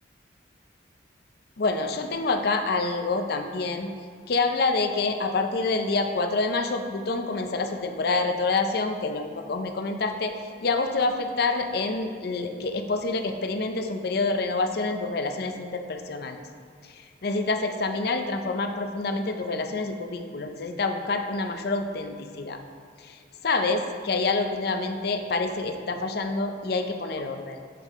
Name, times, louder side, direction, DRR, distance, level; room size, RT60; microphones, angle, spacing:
voice 1, 1.6-3.9 4.3-10.4 10.6-16.4 16.9-22.6 23.0-27.6, left 3 dB, 55° left, 6 dB, 0.5 m, -27 dB
7.5 x 5.4 x 3.5 m, 2.1 s
head